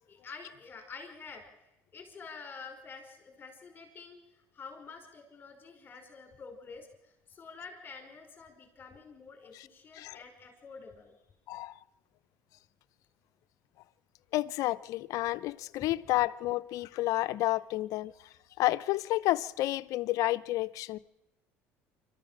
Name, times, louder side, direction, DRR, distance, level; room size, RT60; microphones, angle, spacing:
voice 1, 0.1-1.4 1.9-11.4 15.8-15.9, left 5 dB, 30° left, 5.2 m, -48 dB
voice 2, 11.5-11.8 14.3-18.1 18.6-21.0, left 16 dB, 65° left, 0.7 m, -30 dB
26.0 x 13.5 x 7.5 m
supercardioid pair, 95°, 6 cm